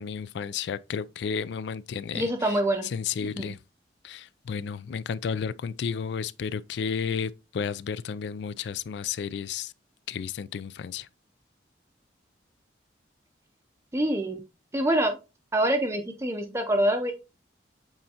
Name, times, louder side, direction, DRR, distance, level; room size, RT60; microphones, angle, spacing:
voice 1, 0.0-2.2 2.9-3.6 4.0-9.7 10.1-11.1, left 6 dB, 65° left, 0.3 m, -32 dB
voice 2, 2.1-2.9 3.2-3.5 13.9-14.4 14.7-15.1 15.5-17.1, right 1 dB, 15° right, 0.6 m, -25 dB
7.8 x 4.3 x 2.8 m
head